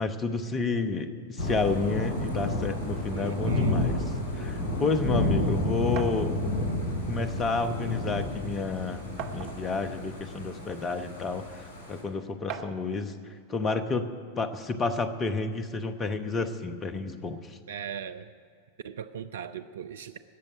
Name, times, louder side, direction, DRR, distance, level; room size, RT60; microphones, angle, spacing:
voice 1, 0.0-4.0 4.4-6.4 7.1-13.1 13.5-14.1 14.4-17.4, left 4 dB, 25° left, 10 dB, 1.0 m, -30 dB
Thunder / Rain, 1.4-12.0, left 1 dB, 50° left, 3.7 m, -31 dB
voice 2, 3.1-3.8 17.7-18.3 18.8-20.2, right 8 dB, 65° right, 9 dB, 0.4 m, -39 dB
sound 1, 6.0-6.2 7.4-7.5 7.9-8.0 9.2-9.8 10.7-10.8 12.5-12.9, right 8 dB, 45° right, 0.9 m, -38 dB
17.0 x 6.8 x 10.0 m, 2.2 s
figure-of-eight pair, 90°, 0 cm